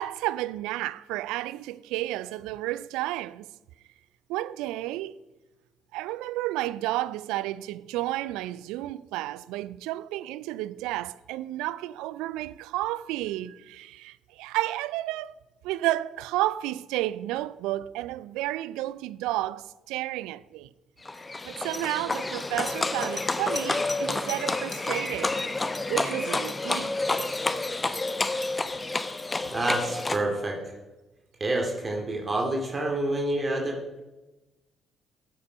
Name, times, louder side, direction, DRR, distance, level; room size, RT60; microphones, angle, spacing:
voice 1, 0.0-3.5 4.3-5.2 5.9-15.3 15.6-20.7 21.4-25.4 25.9-26.9, right 15 dB, 70° right, 0.3 m, -31 dB
Livestock farm animals working animals, 21.0-30.2, left 2 dB, 25° left, 0.9 m, -29 dB
voice 2, 29.5-30.6 31.4-34.0, right 2 dB, 35° right, 2.5 m, -28 dB
13.0 x 8.6 x 5.1 m
hypercardioid pair, 45°, 0 cm